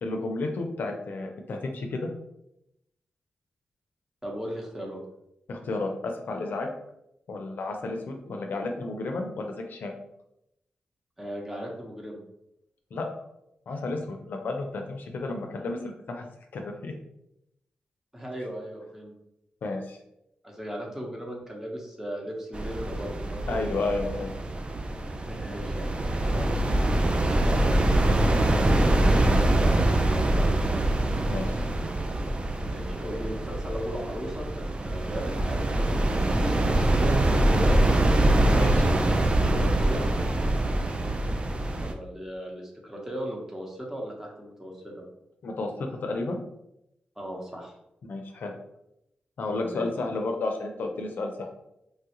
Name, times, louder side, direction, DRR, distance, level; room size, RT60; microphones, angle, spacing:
voice 1, 0.0-2.1 5.5-6.7 7.3-9.9 12.9-13.1 13.7-15.8 16.1-16.9 19.6-20.0 23.5-24.3 26.3-26.5 31.3-31.6 38.5-38.9 45.4-46.4 48.0-48.5 49.4-51.5, left 3 dB, 75° left, 3 dB, 0.4 m, -32 dB
voice 2, 4.2-5.0 11.2-12.2 18.1-19.1 20.4-23.6 25.0-26.0 27.4-30.9 32.6-36.0 36.4-37.9 39.4-40.1 41.8-45.0 47.2-47.7 49.5-49.9, equal, 10° right, -1 dB, 0.9 m, -37 dB
sound 1, 22.5-41.9, right 1 dB, 35° right, 0.4 m, -24 dB
3.1 x 2.3 x 2.9 m, 0.83 s
cardioid pair, 65°, 3 cm